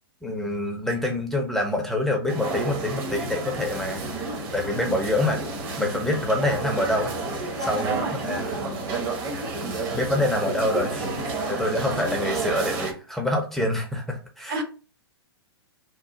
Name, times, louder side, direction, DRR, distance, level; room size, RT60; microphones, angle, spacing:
voice 1, 0.2-5.4 5.8-7.1 7.6-8.8 9.6-11.2 11.5-14.6, left 1 dB, ahead, 0.6 m, -26 dB
sound 1, 2.3-12.9, right 3 dB, 35° right, 0.9 m, -30 dB
voice 2, 7.8-8.4 14.5-14.6, right 4 dB, 60° right, 1.0 m, -31 dB
3.0 x 2.3 x 3.7 m
figure-of-eight pair, 110°, 13 cm